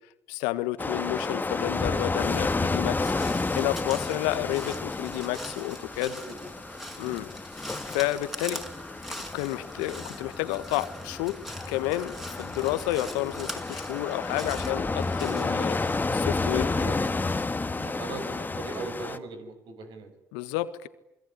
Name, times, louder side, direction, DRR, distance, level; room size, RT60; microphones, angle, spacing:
voice 1, 0.3-3.1 3.5-6.2 7.0-7.3 7.9-8.6 9.1-11.4 11.7-15.8 16.1-16.9 20.3-20.9, left 16 dB, 80° left, 13 dB, 1.7 m, -30 dB
sound 1, 0.8-19.2, left 3 dB, 20° left, 2.0 m, -31 dB
Crow, 2.8-15.9, equal, 5° right, 5.7 m, -42 dB
voice 2, 6.0-6.3 7.2-7.3 16.7-17.3 17.7-20.1, right 3 dB, 70° right, 8 dB, 6.6 m, -39 dB
28.0 x 22.0 x 9.6 m, 0.88 s
hypercardioid pair, 55°, 8 cm